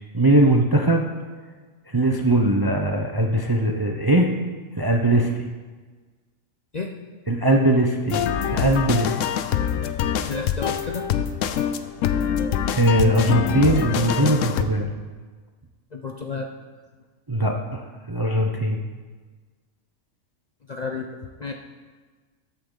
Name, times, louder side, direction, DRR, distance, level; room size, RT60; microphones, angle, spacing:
voice 1, 0.1-1.1 1.9-4.3 4.8-5.5 7.3-8.2 8.5-9.2 12.7-14.9 17.3-18.8, right 1 dB, 25° right, 2 dB, 0.5 m, -20 dB
sound 1, 8.1-14.6, left 9 dB, 75° left, 0.9 m, -25 dB
voice 2, 10.2-11.1 15.9-16.5 20.7-21.1 21.4-21.5, left 4 dB, 45° left, 2 dB, 0.6 m, -31 dB
13.5 x 8.4 x 3.9 m, 1.4 s
omnidirectional pair, 1.4 m